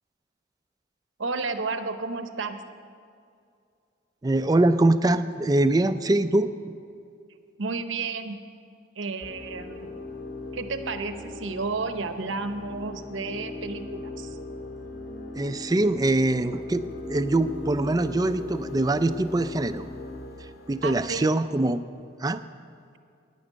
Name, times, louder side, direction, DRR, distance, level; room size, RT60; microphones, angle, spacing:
voice 1, 1.2-2.6 7.6-8.4 9.0-9.9 10.5-14.4 20.8-21.3, right 4 dB, 75° right, 9 dB, 0.8 m, -32 dB
voice 2, 4.2-6.5 15.4-19.8 20.7-21.8 22.2-22.4, right 2 dB, 20° right, 11 dB, 0.4 m, -23 dB
sound 1, 9.2-21.2, left 2 dB, 70° left, 1.7 m, -39 dB
11.5 x 9.7 x 7.4 m, 2.4 s
head